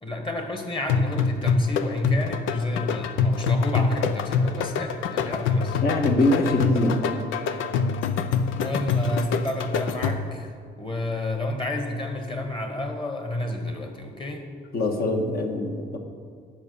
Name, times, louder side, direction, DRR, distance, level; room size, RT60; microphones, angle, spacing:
voice 1, 0.0-5.8 6.8-7.0 8.6-10.5 10.8-14.5, left 2 dB, 25° left, 4 dB, 1.7 m, -30 dB
sound 1, 0.9-10.4, left 5 dB, 90° left, 0.6 m, -25 dB
voice 2, 5.8-7.3 14.7-16.0, left 2 dB, 50° left, 3 dB, 1.5 m, -24 dB
10.5 x 5.6 x 7.0 m, 2.1 s
cardioid pair, 90°, 20 cm